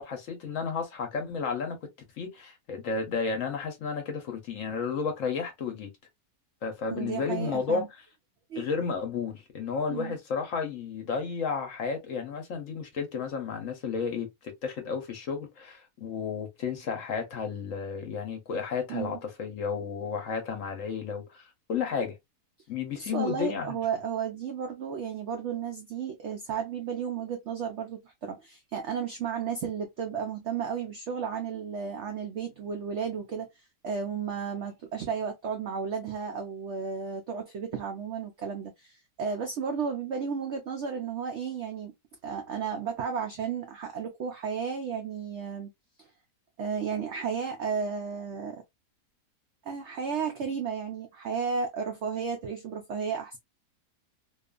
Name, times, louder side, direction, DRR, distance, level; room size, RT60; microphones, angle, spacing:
voice 1, 0.0-1.8 2.2-5.9 6.6-7.8 8.6-22.2 22.7-23.8, left 5 dB, 60° left, 1.0 m, -32 dB
voice 2, 6.9-7.9 8.5-8.8 9.9-10.1 18.9-19.2 23.0-41.9 42.2-45.7 46.0-46.1 46.6-48.6 49.6-53.4, right 6 dB, 75° right, 0.6 m, -33 dB
2.7 x 2.4 x 2.3 m
omnidirectional pair, 1.7 m